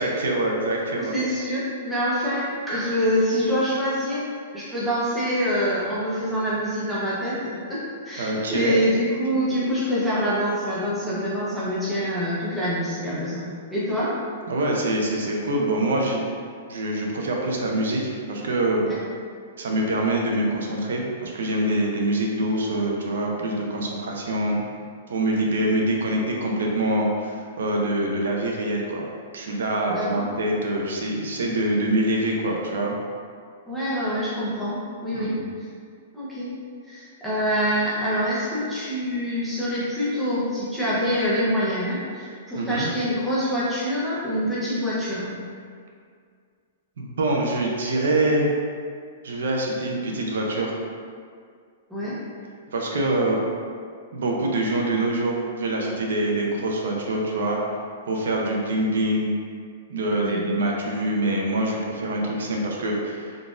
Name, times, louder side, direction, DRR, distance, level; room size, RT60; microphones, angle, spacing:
voice 1, 0.0-1.1 8.2-8.8 14.5-16.2 16.7-18.8 19.6-24.7 25.1-29.0 29.3-32.9 35.1-35.4 42.6-42.9 47.0-48.5 49.2-50.7 52.7-53.4 54.1-57.6 58.1-59.3 59.9-63.4, right 1 dB, 90° right, -1 dB, 0.5 m, -25 dB
voice 2, 1.0-4.2 4.5-13.5 13.7-14.1 18.8-19.0 29.9-30.3 33.7-35.4 36.1-36.5 36.9-45.3 51.9-52.2 60.1-60.4, equal, ahead, -11 dB, 0.6 m, -25 dB
3.7 x 2.4 x 2.5 m, 2.1 s
hypercardioid pair, 170°, 0 cm